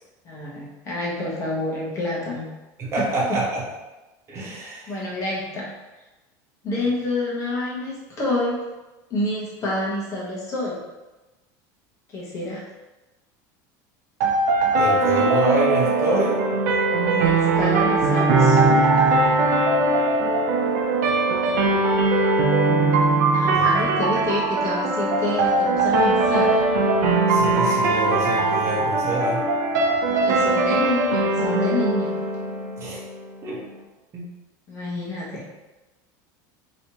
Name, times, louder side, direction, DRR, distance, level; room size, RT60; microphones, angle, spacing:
voice 1, 0.2-2.5 3.0-3.1 4.9-5.7 6.6-8.6 9.1-10.8 12.1-12.6 17.0-18.8 23.3-26.6 30.0-32.1 34.7-35.4, left 2 dB, 30° left, -5 dB, 1.1 m, -28 dB
voice 2, 2.8-3.6 4.3-5.0 14.8-16.4 23.5-23.7 27.3-29.4 32.8-33.0 33.4-33.6 34.1-34.3, right 2 dB, 30° right, -5 dB, 1.1 m, -26 dB
sound 1, 14.2-33.2, right 2 dB, 85° right, 0.6 m, -20 dB
3.1 x 3.0 x 2.9 m, 1.1 s
supercardioid pair, 135°, 10 cm